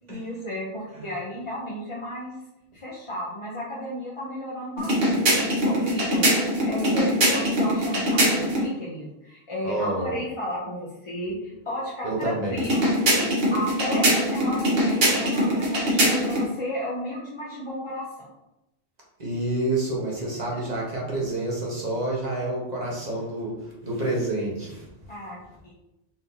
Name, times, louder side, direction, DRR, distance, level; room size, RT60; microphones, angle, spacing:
voice 1, 0.0-2.3 2.7-5.2 5.6-18.3 25.1-25.4 25.6-25.7, equal, 30° left, -6 dB, 0.8 m, -33 dB
sound 1, 4.8-8.7 12.6-16.5, equal, 65° right, 1.3 m, -22 dB
voice 2, 9.6-10.1 12.0-12.7 19.2-24.9, right 2 dB, 40° right, -3 dB, 1.3 m, -28 dB
4.3 x 3.7 x 2.7 m, 0.91 s
omnidirectional pair, 1.1 m